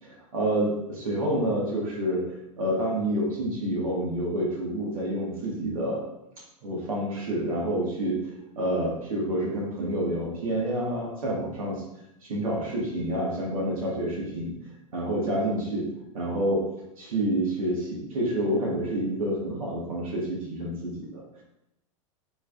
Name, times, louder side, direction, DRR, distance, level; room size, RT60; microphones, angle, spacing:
voice 1, 0.0-2.2 2.6-6.0 6.6-11.8 12.2-14.5 14.9-15.8 16.1-16.6 17.0-21.2, right 1 dB, 85° right, -3 dB, 1.7 m, -28 dB
5.9 x 3.2 x 2.6 m, 0.84 s
hypercardioid pair, 110°, 17 cm